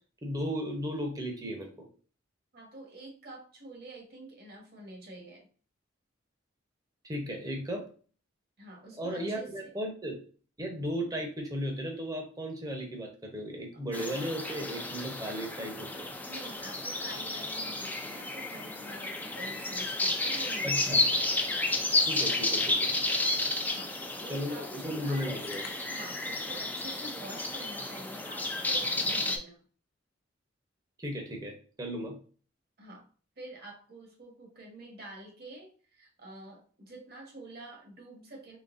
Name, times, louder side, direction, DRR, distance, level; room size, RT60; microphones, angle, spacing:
voice 1, 0.2-1.9 7.0-7.9 9.0-10.2 10.6-16.1 20.6-21.0 22.1-22.8 24.3-25.6 31.0-32.2, equal, 20° right, 2 dB, 0.8 m, -35 dB
voice 2, 2.5-5.5 8.6-9.7 13.7-13.8 16.2-21.3 23.6-25.3 25.9-29.6 32.8-33.1 33.4-38.6, right 2 dB, 50° right, 1 dB, 1.3 m, -47 dB
sound 1, 13.9-29.4, left 2 dB, 10° left, 0.4 m, -32 dB
sound 2, 25.4-26.2, left 6 dB, 85° left, 0.5 m, -48 dB
3.9 x 3.2 x 2.5 m, 0.41 s
head